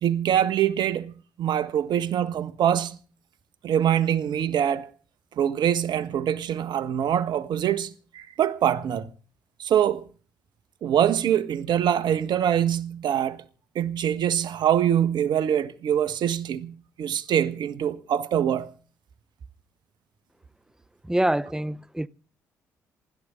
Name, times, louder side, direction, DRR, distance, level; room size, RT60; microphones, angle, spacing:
voice 1, 0.0-1.1 1.4-3.0 3.6-4.9 5.4-9.1 9.6-10.0 10.8-13.4 13.7-18.7, right 10 dB, 60° right, 1.4 m, -24 dB
voice 2, 21.1-22.1, right 1 dB, 5° right, 0.8 m, -25 dB
27.5 x 12.5 x 3.9 m
hypercardioid pair, 45°, 9 cm